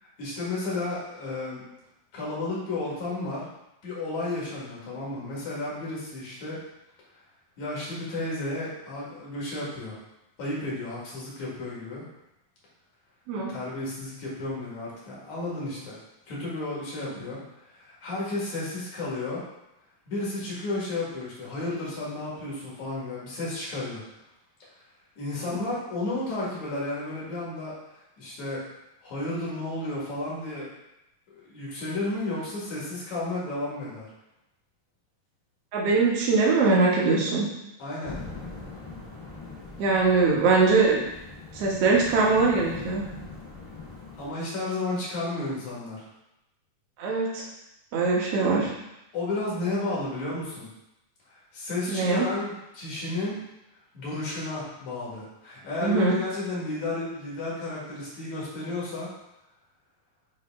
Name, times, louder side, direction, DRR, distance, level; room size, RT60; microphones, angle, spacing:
voice 1, 0.0-1.6 2.1-3.5 3.8-6.6 7.6-10.0 10.4-12.0 13.3-16.0 16.3-17.4 17.7-19.4 20.1-24.0 25.2-27.7 28.2-28.6 29.0-30.7 31.3-34.1 37.8-38.2 44.2-46.1 49.1-50.7 51.3-53.4 53.9-59.1, left 2 dB, 60° left, -6 dB, 3.0 m, -32 dB
voice 2, 35.7-37.5 39.8-41.0 41.5-43.0 47.0-47.5 47.9-48.7 51.9-52.3 55.8-56.2, right 4 dB, 55° right, -3 dB, 1.9 m, -22 dB
sound 1, 38.0-44.3, left 3 dB, 20° left, 0.6 m, -42 dB
9.7 x 3.3 x 3.6 m, 0.90 s
omnidirectional pair, 4.0 m